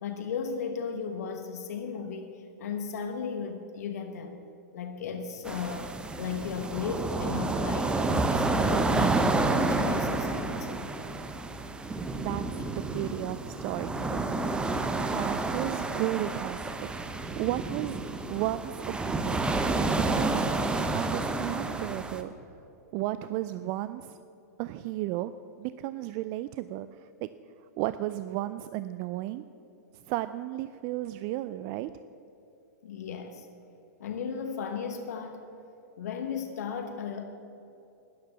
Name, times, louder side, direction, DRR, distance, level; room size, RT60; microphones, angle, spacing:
voice 1, 0.0-4.4 4.7-10.9 12.3-12.5 32.8-33.5 34.0-35.5 36.0-37.2, left 6 dB, 65° left, 5 dB, 1.2 m, -36 dB
sound 1, 5.5-22.2, right 3 dB, 10° right, 0.8 m, -29 dB
voice 2, 12.1-14.3 15.0-16.9 17.3-18.0 18.3-19.6 19.9-20.5 20.9-22.3 22.9-24.2 24.6-25.3 25.6-27.3 27.8-29.4 30.1-31.9, right 15 dB, 40° right, 13 dB, 0.4 m, -34 dB
12.5 x 10.0 x 6.8 m, 2.9 s
figure-of-eight pair, 105°, 9 cm